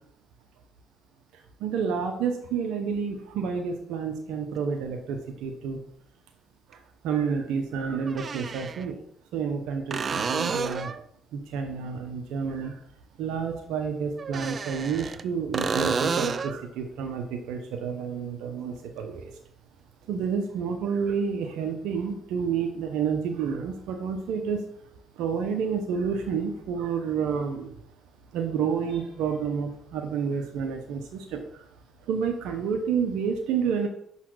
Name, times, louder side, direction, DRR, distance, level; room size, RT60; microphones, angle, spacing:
voice 1, 1.6-5.8 6.7-9.0 9.3-10.9 11.3-12.8 13.2-19.4 20.1-24.6 25.2-27.8 28.3-31.7 32.1-33.9, right 6 dB, 80° right, 4 dB, 0.8 m, -29 dB
sound 1, 4.6-4.7 6.7-6.8 8.1-8.9 9.9-11.0 14.2-15.2 15.5-16.6 20.2-20.3, right 5 dB, 40° right, 0.4 m, -30 dB
5.7 x 4.2 x 6.2 m, 0.72 s
supercardioid pair, 80°, 0 cm